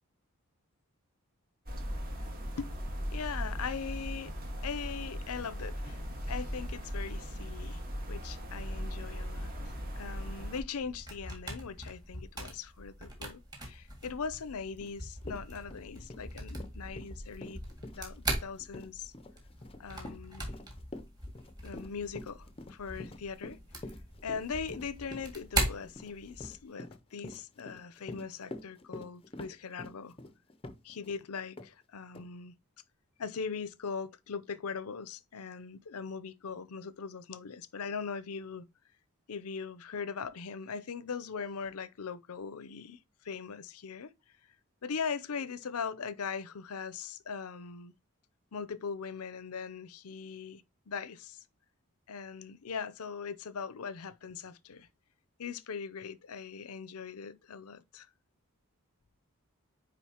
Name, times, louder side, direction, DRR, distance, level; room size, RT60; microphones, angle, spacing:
sound 1, 1.7-10.6, equal, 40° right, 1.7 m, -38 dB
voice 1, 3.1-4.3 4.6-6.0 6.3-17.6 18.0-19.1 19.8-20.5 21.6-23.6 24.2-30.2 30.8-32.5 33.2-38.7 39.3-44.1 44.8-47.9 48.5-51.4 52.1-54.9 55.4-58.1, left 6 dB, 80° left, 0.6 m, -40 dB
sound 2, 10.7-26.6, right 1 dB, 20° right, 2.0 m, -40 dB
Run, 14.8-14.9 15.2-31.2 31.6-31.7 32.1-32.3, left 2 dB, 25° left, 0.6 m, -46 dB
9.3 x 3.7 x 2.9 m
head